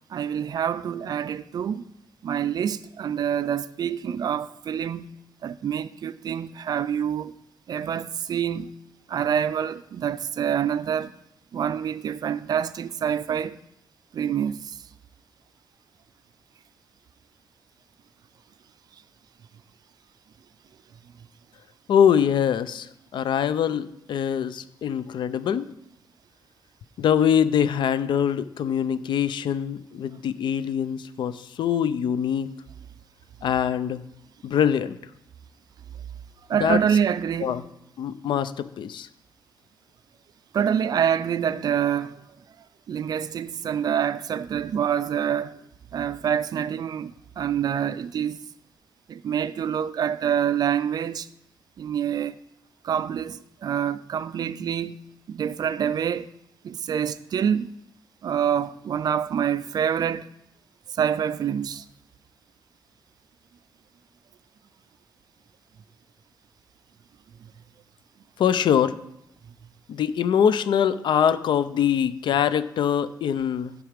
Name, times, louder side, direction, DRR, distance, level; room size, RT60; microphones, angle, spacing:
voice 1, 0.1-1.8 2.2-5.1 5.4-7.3 7.7-8.7 9.1-11.1 11.5-13.6 14.1-14.8 36.5-37.6 40.5-42.2 42.9-45.6 45.9-48.4 49.1-51.3 51.8-52.4 52.8-56.3 56.6-57.7 58.2-60.3 61.0-61.8, right 8 dB, 55° right, 0.3 m, -26 dB
voice 2, 21.9-22.9 23.1-25.7 27.0-32.5 33.4-34.0 34.4-35.0 36.6-36.8 37.4-37.6 38.0-39.1 68.4-69.0 69.9-73.7, left 8 dB, 75° left, 0.5 m, -23 dB
11.0 x 4.9 x 5.0 m
wide cardioid pair, 135°, 8 cm